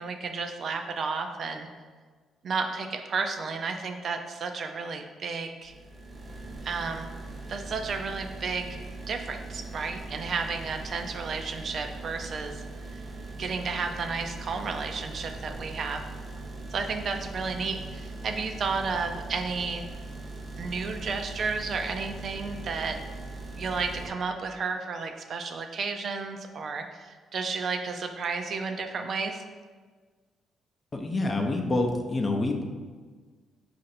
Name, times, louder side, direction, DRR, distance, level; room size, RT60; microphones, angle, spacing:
voice 1, 0.0-1.7 2.4-5.7 6.6-7.1 7.5-12.6 13.4-16.0 16.7-19.9 20.6-23.0 23.6-29.4, right 4 dB, 55° right, 5 dB, 0.4 m, -32 dB
sound 1, 5.6-24.1, right 2 dB, 25° right, 0.8 m, -40 dB
voice 2, 30.9-32.6, left 2 dB, 30° left, 3 dB, 0.6 m, -27 dB
5.0 x 2.5 x 4.2 m, 1.5 s
cardioid pair, 90°, 0 cm